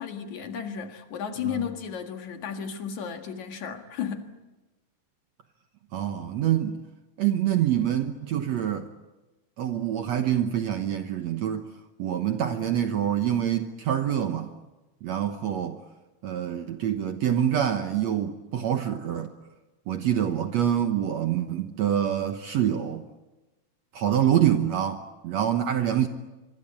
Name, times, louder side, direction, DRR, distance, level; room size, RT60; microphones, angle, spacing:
voice 1, 0.0-4.3, left 8 dB, 60° left, 2.9 m, -34 dB
voice 2, 5.9-6.8 7.2-8.9 9.6-11.7 12.0-14.5 15.0-15.8 16.2-19.3 19.9-23.0 23.9-26.1, right 10 dB, 65° right, 1.9 m, -26 dB
25.0 x 24.5 x 8.5 m
omnidirectional pair, 4.1 m